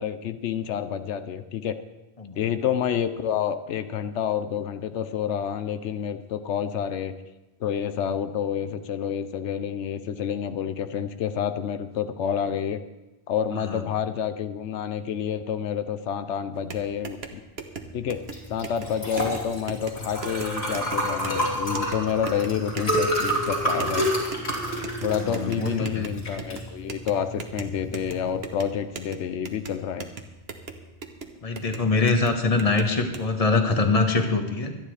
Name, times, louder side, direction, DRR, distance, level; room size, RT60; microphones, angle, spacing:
voice 1, 0.0-1.8 2.4-7.1 7.6-12.8 13.3-17.4 17.9-18.2 18.5-24.1 25.0-30.1, left 8 dB, 90° left, 10 dB, 1.0 m, -28 dB
sound 1, 16.5-33.2, right 4 dB, 65° right, 1.3 m, -40 dB
Liquid, 18.3-28.4, equal, 60° left, 3.7 m, -29 dB
voice 2, 25.1-26.1 31.4-34.8, left 3 dB, 35° left, 5 dB, 1.3 m, -24 dB
25.0 x 9.9 x 3.3 m, 1.1 s
omnidirectional pair, 1.1 m